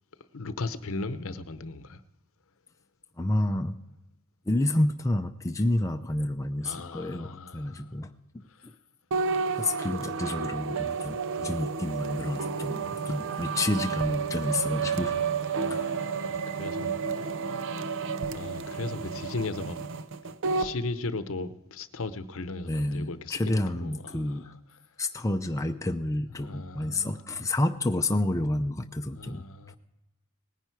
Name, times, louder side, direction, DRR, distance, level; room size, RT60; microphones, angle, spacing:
voice 1, 0.3-2.0 6.6-7.9 8.6-8.7 14.8-17.0 18.3-19.8 20.5-24.4 26.4-27.1 29.2-29.8, left 3 dB, 65° left, 0.8 m, -37 dB
voice 2, 3.2-3.8 4.5-8.1 8.3-8.7 9.6-15.1 15.7-15.9 22.7-24.5 25.0-29.4, left 1 dB, 15° left, 0.5 m, -29 dB
sound 1, 9.1-20.7, right 5 dB, 60° right, 0.6 m, -31 dB
18.5 x 10.0 x 4.7 m
head